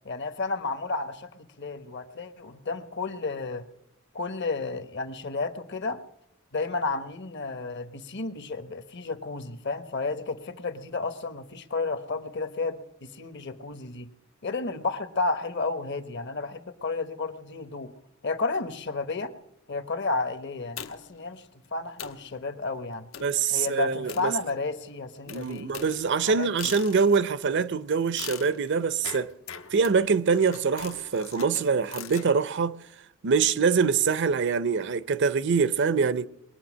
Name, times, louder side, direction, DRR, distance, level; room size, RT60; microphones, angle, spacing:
voice 1, 0.0-3.6 4.1-6.0 6.5-14.1 14.4-17.9 18.2-19.3 19.7-21.5 21.7-23.1 23.5-25.7 26.3-26.5, left 3 dB, 55° left, 1.2 m, -32 dB
sound 1, 20.8-21.2 21.6-21.7 22.0-22.3 23.1-23.4 24.1-24.8 25.3-27.3 28.2-32.3, left 8 dB, 80° left, 1.1 m, -42 dB
voice 2, 23.2-24.3 25.3-29.3 29.7-32.8 33.2-36.3, right 5 dB, 60° right, 0.6 m, -24 dB
21.5 x 8.9 x 6.2 m
head